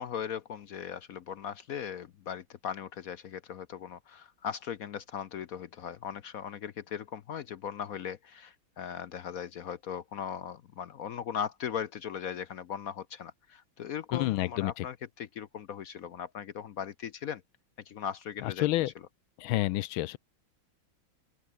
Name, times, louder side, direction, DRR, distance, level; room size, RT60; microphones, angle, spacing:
voice 1, 0.0-17.4 17.9-18.7, left 8 dB, 65° left, 0.9 m, -38 dB
voice 2, 14.1-14.8 18.4-18.9 19.4-20.2, left 17 dB, 80° left, 1.4 m, -29 dB
open air
omnidirectional pair, 2.3 m